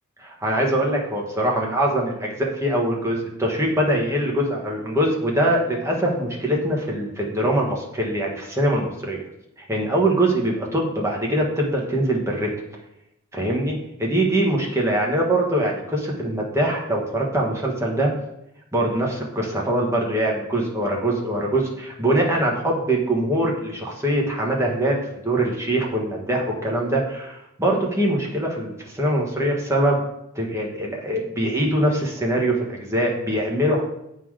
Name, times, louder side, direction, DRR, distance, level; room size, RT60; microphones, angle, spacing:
voice 1, 0.2-9.2 9.7-12.5 13.3-18.1 18.7-30.0 30.3-33.8, right 1 dB, 15° right, -2 dB, 1.4 m, -23 dB
8.0 x 3.9 x 4.8 m, 0.82 s
head